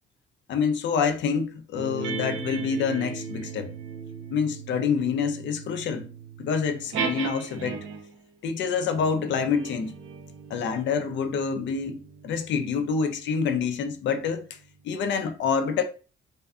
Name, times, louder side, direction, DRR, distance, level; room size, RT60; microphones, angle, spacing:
voice 1, 0.5-3.7 4.3-6.1 6.4-7.8 8.4-9.9 10.5-14.6 14.8-15.8, left 6 dB, 65° left, 0.5 m, -27 dB
sound 1, 1.8-8.2 8.9-13.8, right 5 dB, 85° right, 0.5 m, -37 dB
2.5 x 2.3 x 2.3 m
cardioid pair, 90°, 20 cm